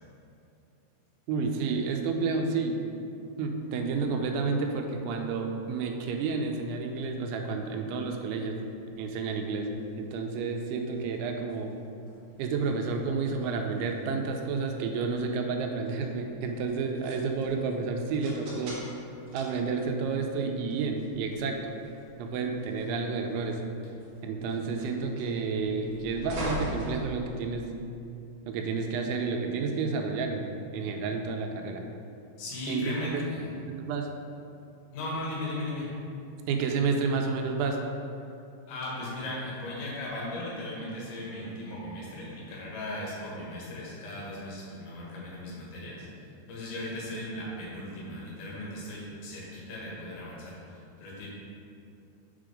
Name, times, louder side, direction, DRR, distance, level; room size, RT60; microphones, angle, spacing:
voice 1, 1.3-2.8 3.4-8.6 9.0-9.7 10.0-11.7 12.4-18.8 19.3-21.8 22.2-23.6 24.2-27.7 28.5-31.9 32.7-33.2 33.6-34.1 36.5-37.8, right 4 dB, 85° right, 3 dB, 3.0 m, -30 dB
sound 1, 8.4-27.8, equal, 55° right, 2.0 m, -44 dB
voice 2, 32.4-33.4 34.9-35.9 38.7-46.1 46.5-51.3, left 1 dB, 75° left, -5 dB, 3.8 m, -37 dB
7.5 x 5.0 x 5.1 m, 2.6 s
omnidirectional pair, 5.3 m